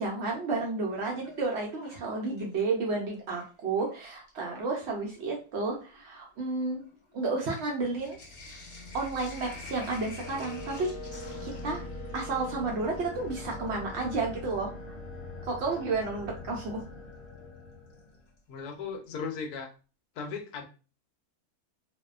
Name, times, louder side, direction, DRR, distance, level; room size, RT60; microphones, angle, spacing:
voice 1, 0.0-6.8 7.1-8.2 8.9-10.9 11.4-11.8 12.1-14.7 15.4-16.8, right 3 dB, 65° right, -1 dB, 0.7 m, -31 dB
Sink (filling or washing), 0.8-2.8 3.1-4.0 4.8-4.9 5.1-14.2 16.0-16.1 17.9-18.4 18.7-18.8 19.0-19.1, left 3 dB, 25° left, 0.7 m, -50 dB
sound 1, 7.8-18.3, left 3 dB, 50° left, 1.0 m, -44 dB
Wind instrument woodwind instrument, 10.2-18.2, left 1 dB, 70° left, 0.7 m, -47 dB
voice 2, 18.5-19.7 20.2-20.6, left 5 dB, 85° left, 3 dB, 1.1 m, -36 dB
2.6 x 2.1 x 2.3 m, 0.35 s
omnidirectional pair, 1.6 m